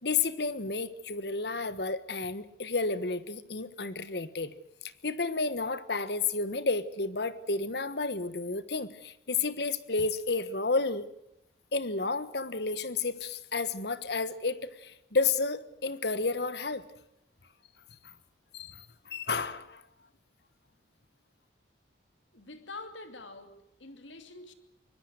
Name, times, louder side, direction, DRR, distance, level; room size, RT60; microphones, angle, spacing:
voice 1, 0.0-4.5 4.8-11.0 11.7-16.8 18.5-19.8, left 4 dB, 60° left, 14 dB, 1.3 m, -31 dB
voice 2, 22.3-24.5, left 3 dB, 80° left, 8 dB, 2.8 m, -46 dB
24.5 x 21.0 x 6.5 m, 0.82 s
head